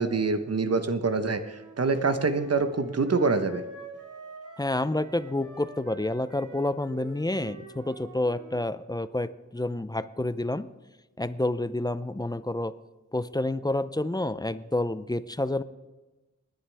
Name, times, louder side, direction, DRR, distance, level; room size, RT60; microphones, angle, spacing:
voice 1, 0.0-3.6, right 4 dB, 55° right, 9 dB, 1.0 m, -25 dB
Wind instrument woodwind instrument, 1.4-8.7, right 2 dB, 85° right, 3.4 m, -46 dB
voice 2, 4.6-10.7 11.2-12.7 13.1-15.6, left 1 dB, 15° left, 14 dB, 0.5 m, -29 dB
19.5 x 10.5 x 3.4 m, 1.1 s
wide cardioid pair, 80°, 30 cm